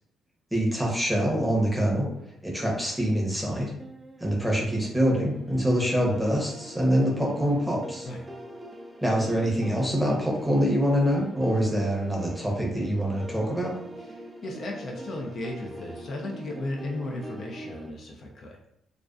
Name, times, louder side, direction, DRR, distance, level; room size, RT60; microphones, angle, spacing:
voice 1, 0.5-2.1 2.4-3.7 4.2-8.1 9.0-13.7, equal, 5° right, -3 dB, 0.7 m, -25 dB
sound 1, 3.8-17.9, right 1 dB, 20° right, 0.3 m, -42 dB
voice 2, 14.1-18.6, left 2 dB, 55° left, 0 dB, 0.4 m, -35 dB
2.4 x 2.2 x 2.3 m, 0.78 s
cardioid pair, 90°, 0 cm